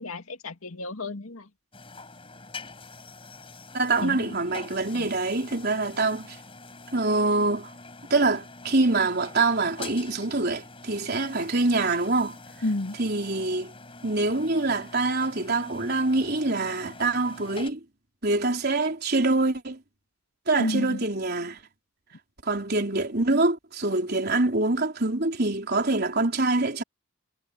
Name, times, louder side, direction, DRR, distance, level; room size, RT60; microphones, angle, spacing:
voice 1, 0.0-1.5 4.0-4.3 4.9-5.1 12.6-13.0 20.6-21.0, left 2 dB, 85° left, 2.2 m, -31 dB
sound 1, 1.7-17.7, left 3 dB, 25° left, 6.3 m, -45 dB
voice 2, 3.7-6.4 6.9-7.7 8.1-12.4 13.0-13.7 14.0-17.8 18.2-19.8 20.5-21.6 22.4-26.8, right 2 dB, 50° right, 4.2 m, -25 dB
head